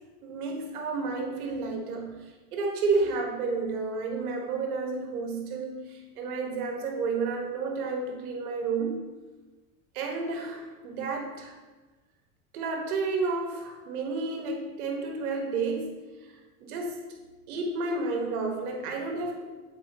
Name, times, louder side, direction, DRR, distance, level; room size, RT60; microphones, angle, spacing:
voice 1, 0.2-9.1 9.9-11.5 12.5-16.0 16.6-17.0 17.5-19.5, right 4 dB, 85° right, 2 dB, 1.5 m, -31 dB
8.1 x 4.6 x 2.9 m, 1.2 s
supercardioid pair, 100°, 43 cm